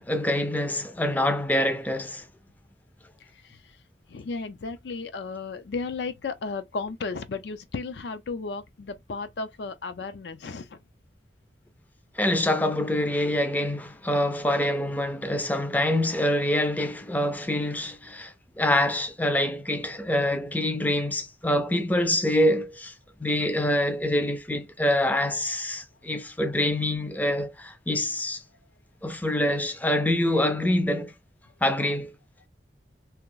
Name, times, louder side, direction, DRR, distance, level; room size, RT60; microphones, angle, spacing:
voice 1, 0.0-2.3 12.2-22.9 23.2-28.4 29.0-31.1 31.6-32.1, left 1 dB, 10° left, 0.4 m, -25 dB
voice 2, 3.3-3.7 4.1-10.8, left 4 dB, 75° left, 0.5 m, -34 dB
2.9 x 2.4 x 3.7 m
head